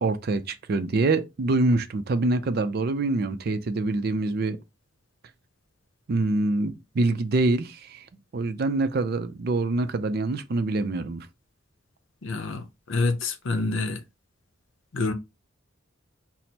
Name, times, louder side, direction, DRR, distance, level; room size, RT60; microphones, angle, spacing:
voice 1, 0.0-4.6 6.1-8.1 8.3-11.3, right 2 dB, 50° right, 0.4 m, -25 dB
voice 2, 12.2-14.0 14.9-15.1, left 3 dB, 75° left, 0.6 m, -27 dB
6.0 x 2.0 x 2.8 m
head